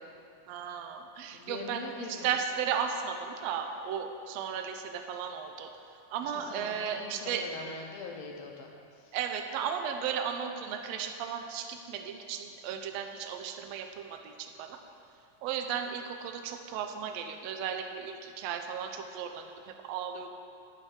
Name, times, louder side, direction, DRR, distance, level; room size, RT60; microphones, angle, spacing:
voice 1, 0.5-5.7 6.1-7.5 9.1-14.8 15.4-20.3, right 8 dB, 80° right, 5 dB, 1.6 m, -35 dB
voice 2, 1.3-2.3 6.5-8.7, left 4 dB, 70° left, 1 dB, 1.7 m, -43 dB
11.5 x 7.6 x 4.8 m, 2.7 s
omnidirectional pair, 3.6 m